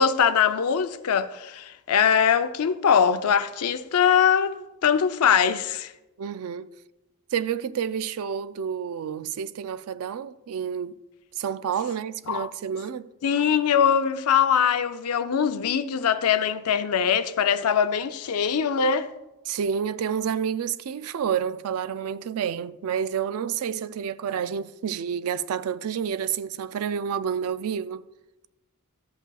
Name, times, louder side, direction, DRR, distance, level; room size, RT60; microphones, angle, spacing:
voice 1, 0.0-5.9 12.3-12.5 13.2-19.1, left 7 dB, 85° left, 0.5 m, -22 dB
voice 2, 6.2-6.7 7.3-11.0 11.4-13.1 19.5-28.0, right 7 dB, 75° right, 0.4 m, -29 dB
13.0 x 8.1 x 2.3 m
head